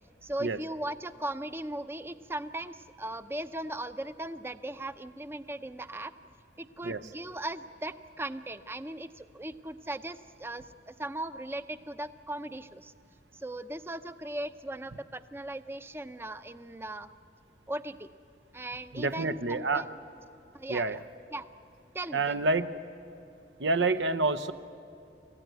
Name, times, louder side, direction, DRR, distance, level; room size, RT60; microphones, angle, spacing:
voice 1, 0.2-6.1 6.6-12.9 13.3-17.1 17.7-18.1 18.5-19.9 20.5-21.0 21.3-21.5 21.9-22.4, right 1 dB, 15° right, 11 dB, 0.6 m, -38 dB
voice 2, 18.9-19.8 20.7-21.0 22.1-22.7 23.6-24.5, right 3 dB, 90° right, 11 dB, 0.9 m, -28 dB
29.0 x 15.0 x 9.3 m, 2.7 s
head